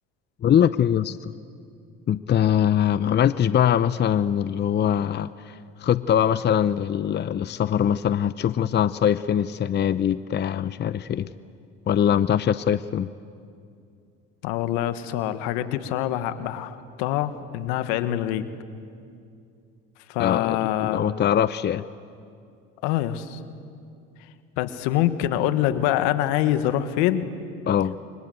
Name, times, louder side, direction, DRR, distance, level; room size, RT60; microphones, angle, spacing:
voice 1, 0.4-1.3 2.1-5.5 5.8-11.3 11.9-13.1 20.2-21.9 27.7-28.0, left 9 dB, 35° left, 15 dB, 0.7 m, -22 dB
voice 2, 14.4-18.5 20.1-21.0 22.8-23.4 24.6-27.3, left 12 dB, 80° left, 11 dB, 1.6 m, -25 dB
29.0 x 24.5 x 8.0 m, 2.4 s
supercardioid pair, 80°, 30 cm